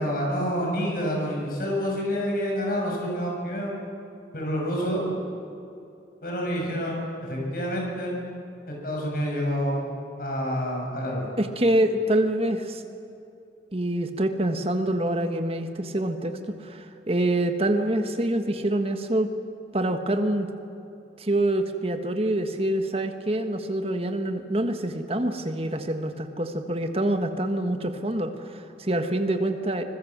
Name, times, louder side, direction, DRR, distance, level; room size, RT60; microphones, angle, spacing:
voice 1, 0.0-3.7 4.3-5.1 6.2-8.1 8.7-9.8 10.2-11.3, equal, 50° left, -1 dB, 7.2 m, -28 dB
voice 2, 11.4-12.8 13.7-19.3 19.7-20.5 21.2-29.8, right 1 dB, 35° right, 7 dB, 1.5 m, -26 dB
25.5 x 21.5 x 7.5 m, 2.7 s
head